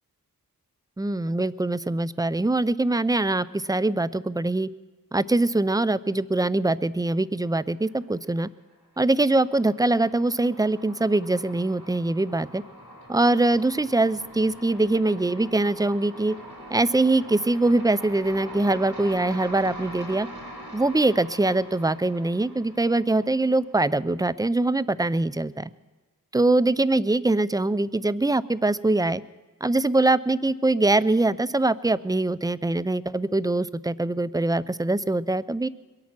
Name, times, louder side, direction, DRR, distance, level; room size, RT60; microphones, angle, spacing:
voice 1, 1.0-4.7 5.1-8.5 9.0-12.6 13.1-16.4 16.7-20.3 20.7-25.7 26.3-29.2 29.6-35.7, right 2 dB, 10° right, 18 dB, 0.4 m, -23 dB
sound 1, 7.7-8.4 8.7-23.9, equal, 90° right, 4.0 m, -43 dB
22.0 x 8.7 x 5.9 m, 1.3 s
cardioid pair, 50°, 36 cm